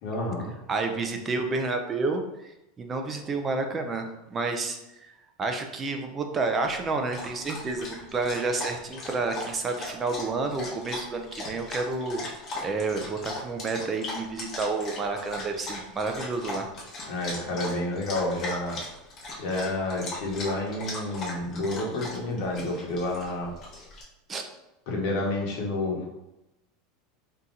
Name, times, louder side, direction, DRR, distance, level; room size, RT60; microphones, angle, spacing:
voice 1, 0.0-0.5 17.1-18.8 19.4-23.5 24.9-26.0, left 2 dB, 50° left, -1 dB, 1.1 m, -29 dB
voice 2, 0.7-2.2 2.8-5.1 5.4-12.2 12.6-16.7 24.3-24.4, right 3 dB, 20° right, 5 dB, 0.4 m, -30 dB
Dog, 6.6-24.0, left 2 dB, 25° left, 1.0 m, -39 dB
3.6 x 2.8 x 3.9 m, 0.90 s
supercardioid pair, 165°, 0 cm